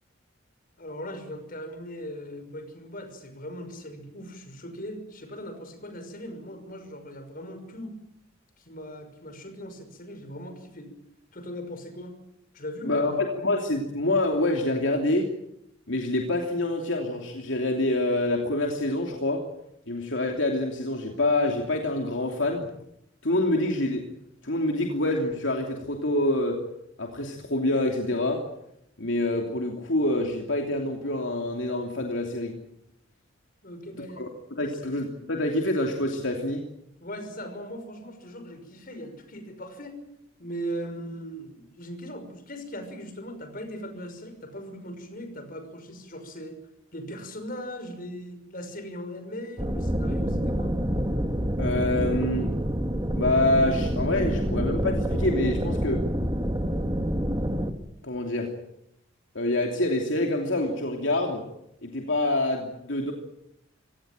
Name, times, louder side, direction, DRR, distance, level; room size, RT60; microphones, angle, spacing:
voice 1, 0.8-8.0 8.6-10.9 11.3-12.1 12.5-13.3 33.6-34.2 34.7-34.9 37.0-40.0 40.4-46.6 46.9-50.8, equal, 45° left, 8 dB, 5.9 m, -39 dB
voice 2, 12.8-15.3 15.9-19.5 19.9-22.7 23.2-24.1 24.4-26.6 27.0-28.4 29.0-32.6 34.2-36.7 51.6-52.5 53.2-56.0 58.0-58.5 59.3-61.4 61.8-63.1, left 1 dB, 70° left, 2 dB, 3.0 m, -26 dB
sound 1, 49.6-57.7, equal, 20° right, 2.0 m, -27 dB
26.0 x 17.5 x 9.0 m, 0.82 s
head